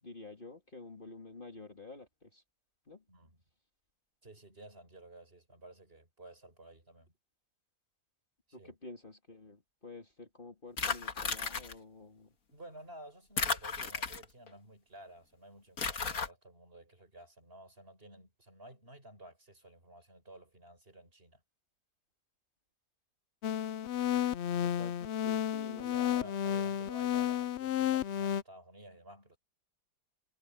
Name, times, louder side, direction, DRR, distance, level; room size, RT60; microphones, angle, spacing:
voice 1, 0.0-2.4 2.9-3.0 8.5-12.3 24.6-26.3, left 2 dB, 30° left, 2.9 m, -50 dB
voice 2, 3.1-3.4 4.2-7.1 8.5-8.8 12.5-21.4 25.8-29.4, right 1 dB, 30° right, 6.7 m, -53 dB
sound 1, 10.8-11.7 13.4-14.5 15.8-16.3, left 5 dB, 55° left, 2.1 m, -34 dB
sound 2, 23.4-28.4, left 10 dB, 75° left, 0.6 m, -32 dB
omnidirectional pair, 1.8 m